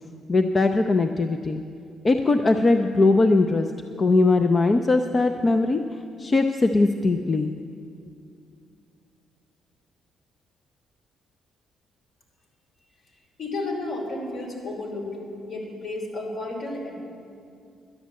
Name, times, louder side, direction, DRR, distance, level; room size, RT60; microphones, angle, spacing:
voice 1, 0.3-1.6 2.0-3.7 4.0-5.8 6.2-7.5, left 3 dB, 30° left, 7 dB, 0.5 m, -20 dB
voice 2, 13.4-15.2 15.4-17.0, left 2 dB, 60° left, 0 dB, 3.3 m, -32 dB
11.5 x 10.0 x 7.5 m, 2.4 s
cardioid pair, 90°, 0 cm